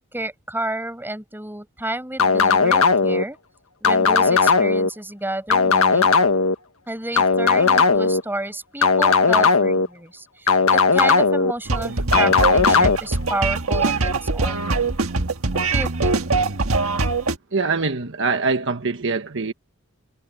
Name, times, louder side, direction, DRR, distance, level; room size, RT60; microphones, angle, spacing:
voice 1, 0.1-3.4 3.8-6.2 6.9-15.0 15.5-16.2, right 1 dB, 10° right, 7.1 m, -31 dB
sound 1, 2.2-3.2 3.8-4.9 5.5-6.5 7.2-8.2 8.8-9.9 10.5-11.5 12.1-13.0, left 4 dB, 80° left, 1.6 m, -17 dB
sound 2, 11.7-17.4, right 3 dB, 80° right, 1.6 m, -22 dB
voice 2, 17.5-19.5, right 4 dB, 60° right, 1.3 m, -23 dB
head